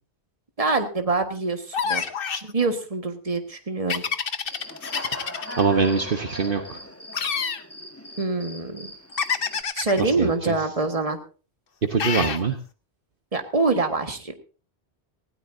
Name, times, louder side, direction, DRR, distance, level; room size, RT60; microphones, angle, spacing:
voice 1, 0.6-2.0 2.4-4.0 8.2-8.9 9.7-11.2 13.3-14.3, right 3 dB, 35° right, 6 dB, 1.7 m, -25 dB
sound 1, 1.7-2.5 3.9-5.6 7.1-7.6 9.2-10.0 12.0-12.4, left 6 dB, 60° left, 1.1 m, -27 dB
Human voice / Cricket, 4.5-9.6, equal, 15° left, 1.4 m, -40 dB
voice 2, 5.6-6.8 10.0-10.6 11.9-12.6, right 5 dB, 55° right, 6 dB, 1.2 m, -23 dB
19.0 x 17.0 x 2.7 m, 0.36 s
omnidirectional pair, 1.1 m